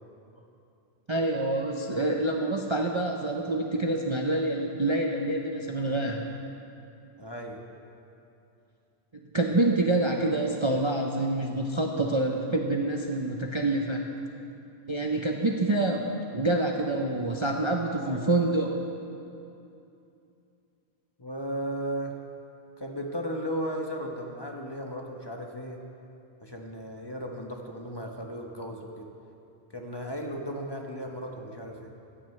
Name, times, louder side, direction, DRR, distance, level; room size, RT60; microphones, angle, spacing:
voice 1, 1.1-6.3 9.3-14.1 14.9-18.8, right 2 dB, 30° right, 1 dB, 0.6 m, -27 dB
voice 2, 7.2-7.6 18.0-18.3 21.2-22.2 22.8-25.8 26.4-29.1 29.7-31.9, equal, 25° left, 1 dB, 1.0 m, -35 dB
16.5 x 14.5 x 3.2 m, 2.7 s
omnidirectional pair, 1.2 m